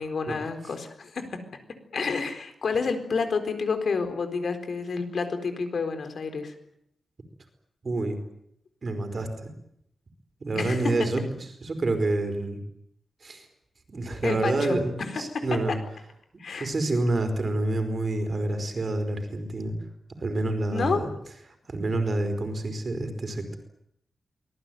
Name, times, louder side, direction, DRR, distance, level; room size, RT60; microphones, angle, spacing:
voice 1, 0.0-1.4 1.9-6.6 10.6-10.9 14.2-15.5 16.4-16.7 20.7-21.1, left 4 dB, 60° left, 7 dB, 4.1 m, -29 dB
voice 2, 7.8-8.2 8.8-9.5 10.4-11.3 11.6-12.6 13.2-13.4 13.9-15.7 16.6-19.7 20.2-21.0 21.7-23.6, right 2 dB, 35° right, 7 dB, 4.8 m, -28 dB
25.5 x 20.0 x 9.3 m, 0.76 s
wide cardioid pair, 180°, 0 cm